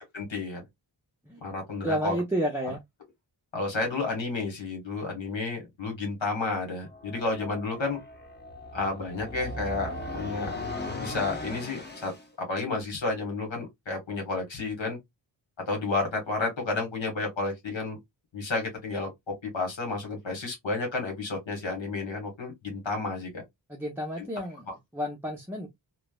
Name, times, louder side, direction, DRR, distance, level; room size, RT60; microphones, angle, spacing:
voice 1, 0.1-0.6 1.4-2.1 3.5-8.0 8.7-10.5 11.0-12.1 12.4-15.0 15.7-18.0 18.3-23.4 24.2-24.3 24.7-24.8, left 3 dB, 75° left, 1.3 m, -31 dB
voice 2, 1.8-2.8 23.7-24.7 24.9-25.7, equal, 5° right, 0.6 m, -30 dB
sound 1, 6.8-12.3, left 2 dB, 20° left, 0.8 m, -38 dB
3.1 x 2.1 x 2.2 m
wide cardioid pair, 80°, 46 cm